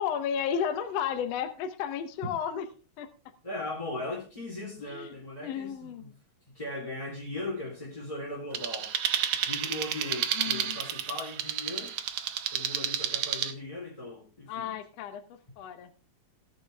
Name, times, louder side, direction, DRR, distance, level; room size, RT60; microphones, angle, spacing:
voice 1, 0.0-2.7 3.0-3.1 4.9-5.1 5.4-6.1 10.4-10.8 14.5-15.2 15.6-15.9, left 8 dB, 65° left, 1.8 m, -33 dB
voice 2, 3.4-6.1 6.5-8.9 9.3-11.9 12.5-14.7, left 2 dB, 10° left, 3.3 m, -38 dB
sound 1, 8.5-13.5, right 9 dB, 65° right, 1.5 m, -31 dB
19.5 x 6.7 x 3.4 m
omnidirectional pair, 3.7 m